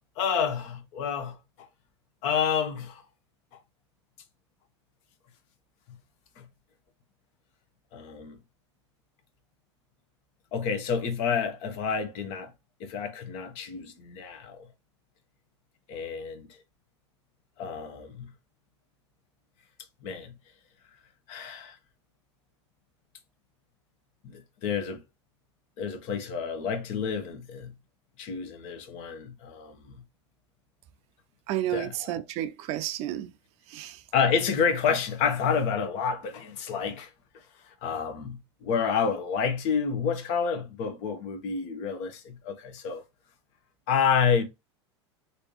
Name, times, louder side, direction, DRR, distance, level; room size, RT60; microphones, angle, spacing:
voice 1, 0.2-1.4 2.2-3.0 6.4-6.5 7.9-8.4 10.5-12.5 12.8-14.7 15.9-16.6 17.6-18.3 20.0-20.3 21.3-21.8 24.2-25.0 25.8-27.7 28.2-29.9 31.7-32.2 34.1-37.1 37.7-43.0 43.9-44.4, left 6 dB, 50° left, 0.9 m, -29 dB
voice 2, 31.5-33.3 33.7-34.0, right 13 dB, 45° right, 0.4 m, -31 dB
3.2 x 2.7 x 3.0 m
hypercardioid pair, 90°, 15 cm